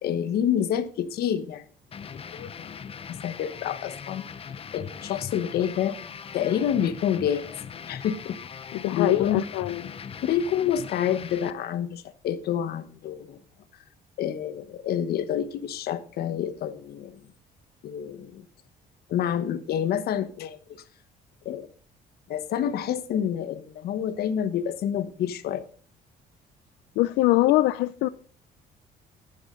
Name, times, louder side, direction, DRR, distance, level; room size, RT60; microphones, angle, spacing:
voice 1, 0.0-1.6 2.3-2.7 3.1-4.3 4.7-6.0 6.3-7.4 7.9-8.4 8.9-9.4 10.2-13.4 14.2-17.2 17.8-18.4 19.1-20.6 21.4-21.7 22.3-25.6, left 9 dB, 65° left, 1.2 m, -28 dB
sound 1, 1.9-11.5, left 7 dB, 35° left, 0.8 m, -40 dB
voice 2, 8.7-9.8 27.0-28.1, left 16 dB, 85° left, 0.5 m, -23 dB
12.0 x 12.0 x 3.9 m
cardioid pair, 110°, 17 cm